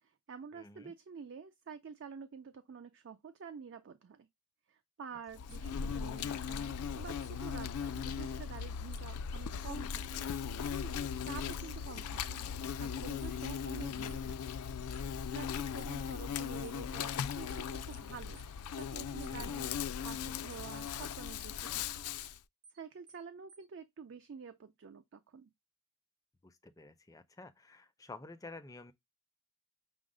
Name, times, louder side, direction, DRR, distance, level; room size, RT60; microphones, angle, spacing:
voice 1, 0.0-4.3 4.7-12.4 12.8-14.6 15.3-18.4 18.7-22.0 22.7-25.5, right 6 dB, 55° right, 0.4 m, -49 dB
voice 2, 0.5-0.9 19.3-19.6 26.4-28.9, left 2 dB, 15° left, 0.4 m, -51 dB
Insect, 5.3-22.4, left 7 dB, 90° left, 0.4 m, -38 dB
sound 1, 5.5-5.7 7.2-7.4 8.9-9.1 10.6-10.8 11.5-11.7 12.4-12.5 13.2-13.4 14.1-14.2 14.9-15.1 15.8-15.9 16.6-16.8 17.5-17.7 17.9-18.1 18.4-18.5 18.8-18.9 19.2-19.4 19.6-19.8 20.1-20.2 20.5-20.7 20.9-21.1 21.4-21.5 21.8-21.9 22.2-22.4 22.6-22.8 23.1-23.2 23.5-23.7, right 4 dB, 90° right, 1.5 m, -59 dB
6.0 x 2.0 x 3.7 m
head